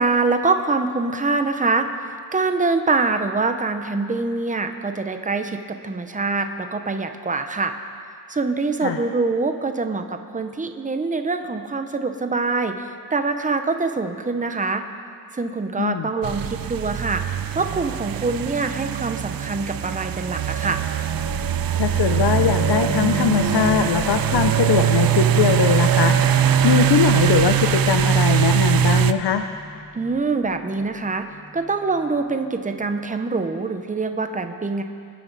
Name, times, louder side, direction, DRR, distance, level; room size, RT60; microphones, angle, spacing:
voice 1, 0.0-7.7 8.3-14.8 15.3-20.8 29.9-31.3 31.5-34.8, right 3 dB, 20° right, 7 dB, 0.8 m, -24 dB
voice 2, 15.8-16.1 21.8-26.2 26.6-29.4, left 8 dB, 80° left, 7 dB, 0.7 m, -21 dB
sound 1, 16.2-29.1, right 10 dB, 60° right, 0.5 m, -21 dB
sound 2, 21.1-32.4, equal, 20° left, 1.8 m, -34 dB
25.5 x 9.5 x 4.1 m, 2.3 s
wide cardioid pair, 130°, 39 cm